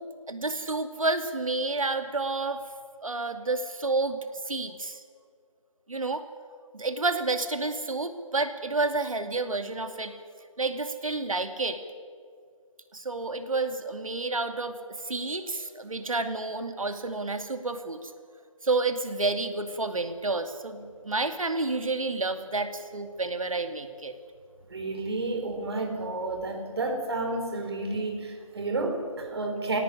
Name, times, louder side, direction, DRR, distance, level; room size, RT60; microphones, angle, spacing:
voice 1, 0.3-2.6 3.0-5.0 5.9-6.2 6.7-10.1 10.6-11.8 12.9-18.1 18.6-24.1, right 3 dB, 80° right, 8 dB, 2.5 m, -30 dB
voice 2, 24.7-29.8, right 2 dB, 50° right, 4 dB, 4.0 m, -31 dB
21.5 x 18.0 x 9.9 m, 2.1 s
figure-of-eight pair, 160°, 17 cm